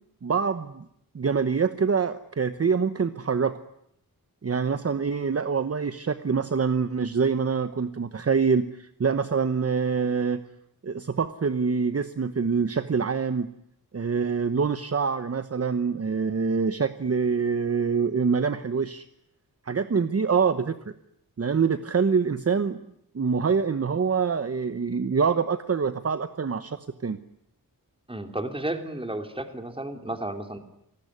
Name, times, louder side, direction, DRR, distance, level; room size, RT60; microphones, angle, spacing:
voice 1, 0.2-0.8 1.1-3.6 4.4-10.4 10.8-13.5 13.9-19.0 19.7-20.8 21.4-22.8 23.1-27.2, right 5 dB, 40° right, 11 dB, 1.1 m, -25 dB
voice 2, 28.1-30.6, right 1 dB, 15° right, 7 dB, 3.0 m, -32 dB
29.0 x 19.5 x 9.8 m, 0.76 s
wide cardioid pair, 115°, 36 cm